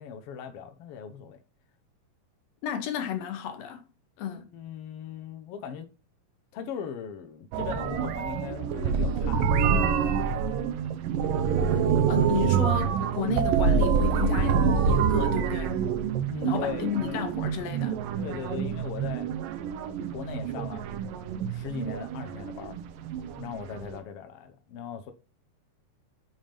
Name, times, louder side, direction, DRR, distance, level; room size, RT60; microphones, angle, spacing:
voice 1, 0.0-1.4 4.5-5.9 6.5-10.3 11.7-11.9 16.3-17.2 18.2-19.3 20.1-20.9 21.5-22.8 23.4-25.1, left 7 dB, 85° left, 1.3 m, -39 dB
voice 2, 2.6-3.8 4.2-4.5 12.1-15.8 16.4-18.0, left 8 dB, 70° left, 1.7 m, -32 dB
sound 1, 7.5-24.0, right 6 dB, 80° right, 2.5 m, -26 dB
8.6 x 3.5 x 5.6 m
omnidirectional pair, 3.9 m